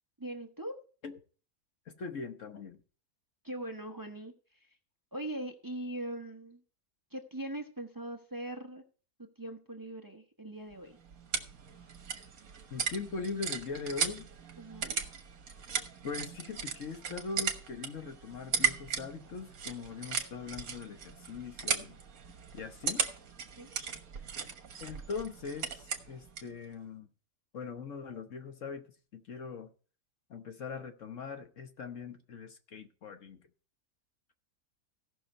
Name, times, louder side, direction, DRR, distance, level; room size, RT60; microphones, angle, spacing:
voice 1, 0.2-0.8 3.4-4.8 5.1-6.6 7.1-8.8 9.4-11.0 14.6-15.0 23.6-23.7, right 1 dB, 15° right, 0.9 m, -41 dB
voice 2, 1.9-2.8 12.7-14.2 16.0-22.0 22.5-23.0 24.8-27.1 27.5-29.7 30.3-33.4, left 5 dB, 60° left, 1.4 m, -41 dB
sound 1, 10.7-26.6, right 6 dB, 70° right, 1.6 m, -37 dB
16.5 x 6.2 x 4.3 m
omnidirectional pair, 1.5 m